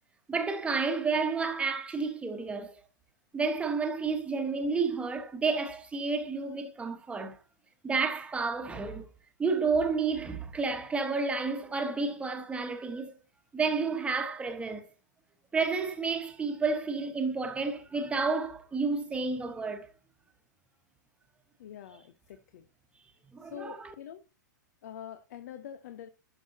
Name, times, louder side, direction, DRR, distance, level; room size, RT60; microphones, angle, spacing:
voice 1, 0.3-2.8 3.3-7.4 7.8-9.1 9.4-13.1 13.5-14.9 15.5-19.9 23.3-23.9, right 4 dB, 10° right, 1.3 m, -30 dB
voice 2, 21.6-22.6 23.5-24.2 24.8-26.1, left 10 dB, 60° left, 0.7 m, -45 dB
11.5 x 5.9 x 2.8 m
figure-of-eight pair, 100°, 10 cm